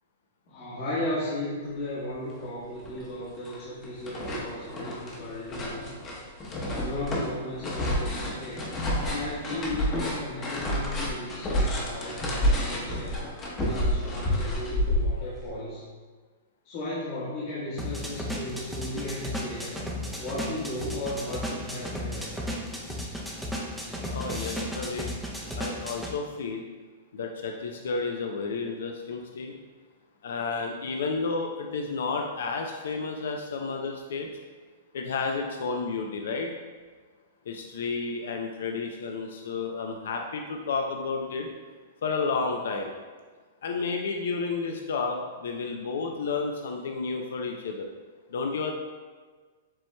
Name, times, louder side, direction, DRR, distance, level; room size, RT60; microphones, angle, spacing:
voice 1, 0.5-6.0 6.7-13.2 13.6-15.8 16.6-19.8 20.2-22.3, left 1 dB, 55° left, -9 dB, 1.3 m, -35 dB
sound 1, 2.4-2.5 2.8-3.6 3.8-15.5, equal, 25° left, 0.9 m, -29 dB
sound 2, 17.8-26.1, equal, ahead, 0.5 m, -34 dB
voice 2, 24.1-25.1 25.5-26.7 27.1-29.5 30.2-34.3 34.9-36.5 37.5-41.5 42.0-42.9 43.6-47.9 48.3-48.7, left 4 dB, 75° left, 2 dB, 0.4 m, -31 dB
7.4 x 3.0 x 2.2 m, 1.5 s
hypercardioid pair, 140°, 0 cm